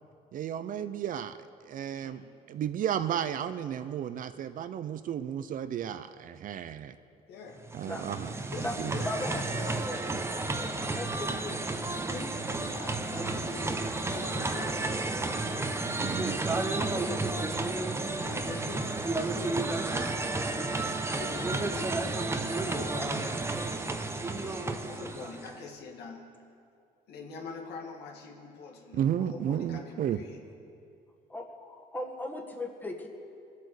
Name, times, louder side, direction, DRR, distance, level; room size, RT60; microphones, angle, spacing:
voice 1, 0.3-1.4 1.6-7.0 7.7-8.3 8.8-8.9 15.9-16.4 28.9-30.2, right 9 dB, 50° right, 12 dB, 0.6 m, -33 dB
voice 2, 1.9-2.3 7.3-7.6 8.5-13.8 14.1-15.2 16.7-17.8 18.2-19.7 20.3-22.3 22.7-23.4 24.3-26.3 27.1-30.4, left 4 dB, 80° left, 2 dB, 2.1 m, -44 dB
sound 1, 7.6-25.6, right 2 dB, 15° right, 0.9 m, -32 dB
voice 3, 9.0-11.6 31.3-33.1, left 1 dB, 10° left, 2 dB, 1.7 m, -38 dB
21.5 x 8.3 x 6.6 m, 2.5 s
cardioid pair, 110°, 17 cm